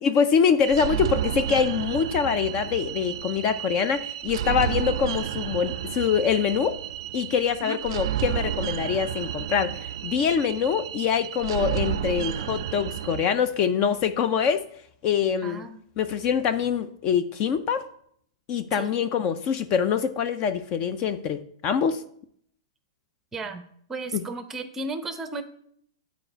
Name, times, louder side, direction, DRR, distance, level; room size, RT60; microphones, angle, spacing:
voice 1, 0.0-6.8 7.1-14.6 15.0-15.7 16.0-17.8 18.5-22.0 24.1-24.2, left 7 dB, 35° left, 11 dB, 0.4 m, -24 dB
sound 1, 0.6-13.3, right 11 dB, 60° right, 0.4 m, -31 dB
voice 2, 15.4-15.8 18.7-18.9 23.3-23.6 23.9-25.4, right 2 dB, 15° right, 9 dB, 0.6 m, -34 dB
8.9 x 4.1 x 4.4 m, 0.66 s
hypercardioid pair, 140°, 3 cm